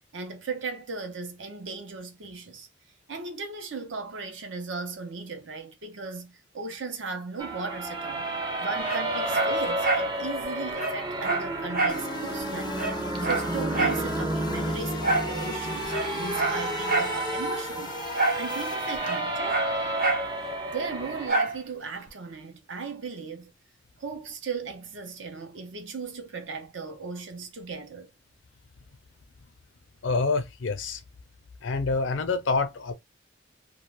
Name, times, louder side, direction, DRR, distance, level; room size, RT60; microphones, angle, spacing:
voice 1, 0.1-2.7 3.1-8.3 8.6-12.8 13.2-19.6 20.7-23.5 24.0-28.1, right 4 dB, 75° right, 0.7 m, -37 dB
sound 1, 7.4-21.3, right 1 dB, 25° right, 0.6 m, -31 dB
Dog, 8.8-10.1 10.4-10.5 10.8-12.0 12.4-12.5 12.7-14.0 15.0-15.3 15.8-17.2 18.1-18.5 18.7-20.3 21.3-21.6 22.1-22.2, right 3 dB, 50° right, 0.9 m, -27 dB
sound 2, 11.9-19.3, left 2 dB, 25° left, 0.3 m, -37 dB
voice 2, 30.0-31.0 31.6-32.9, left 3 dB, 80° left, 0.5 m, -27 dB
2.4 x 2.3 x 3.1 m
head